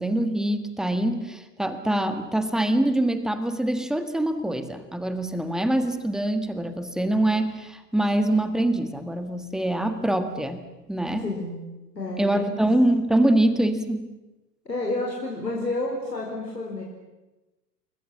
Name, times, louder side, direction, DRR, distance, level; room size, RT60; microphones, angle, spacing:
voice 1, 0.0-11.3 12.2-14.1, right 1 dB, ahead, 9 dB, 1.6 m, -24 dB
voice 2, 11.2-11.6 11.9-12.7 14.6-16.8, left 2 dB, 85° left, -2 dB, 4.4 m, -30 dB
29.0 x 21.0 x 7.3 m, 1.1 s
figure-of-eight pair, 95°, 49 cm